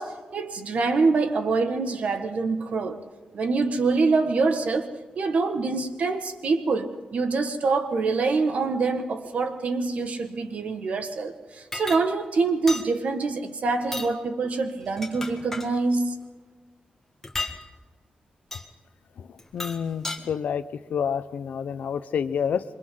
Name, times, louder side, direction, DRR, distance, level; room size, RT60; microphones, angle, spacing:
voice 1, 0.0-3.0 3.3-4.9 5.2-16.1, right 4 dB, 60° right, 7 dB, 1.7 m, -25 dB
sound 1, 11.7-12.0 12.7-12.9 13.8-14.1 14.8-15.7 17.2-17.6 18.5-18.7 19.4-20.2, left 2 dB, 15° left, 1.8 m, -33 dB
voice 2, 19.2-20.6 20.9-22.6, left 7 dB, 80° left, 12 dB, 0.9 m, -28 dB
27.5 x 24.0 x 3.9 m, 1.4 s
wide cardioid pair, 150°, 3 cm